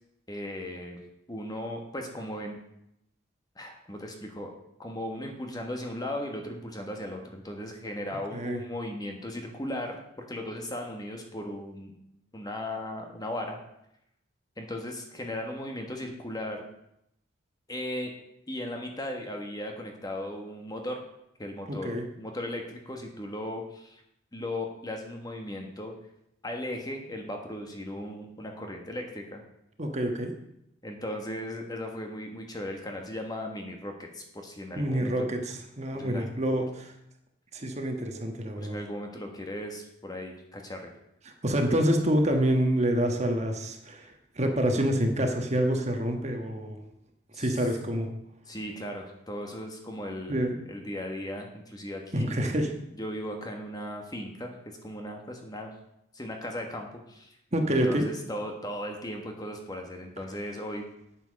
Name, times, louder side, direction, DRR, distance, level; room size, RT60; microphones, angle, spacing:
voice 1, 0.3-1.0 1.3-2.6 3.6-4.5 4.8-11.9 12.3-13.6 14.6-16.6 17.7-18.1 18.5-21.0 21.4-21.9 22.2-24.0 24.3-25.9 26.4-29.4 30.8-35.3 35.9-36.3 38.6-40.9 47.3-47.6 48.5-50.4 50.7-52.3 53.0-55.7 56.1-57.4 57.7-60.9, left 1 dB, 20° left, 3 dB, 1.4 m, -37 dB
voice 2, 21.7-22.0 29.8-30.3 34.7-36.9 37.5-38.7 41.4-46.8 47.4-48.1 50.3-50.6 52.1-52.7 57.5-58.0, right 1 dB, 35° right, 4 dB, 1.4 m, -27 dB
9.1 x 8.8 x 6.4 m, 0.80 s
head